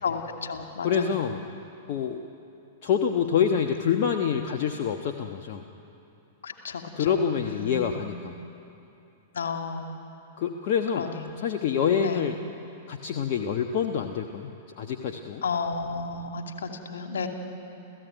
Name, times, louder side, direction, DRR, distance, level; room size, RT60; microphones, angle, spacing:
voice 1, 0.0-1.1 6.4-7.1 7.4-7.9 9.3-10.0 10.9-11.3 12.0-12.2 15.4-17.3, left 5 dB, 70° left, 4 dB, 2.6 m, -32 dB
voice 2, 0.8-1.4 1.9-2.2 2.8-5.6 7.0-8.3 10.4-11.1 11.4-12.4 12.9-15.4, left 7 dB, 50° left, 3 dB, 1.2 m, -26 dB
29.5 x 15.5 x 9.2 m, 2.8 s
figure-of-eight pair, 100°, 0 cm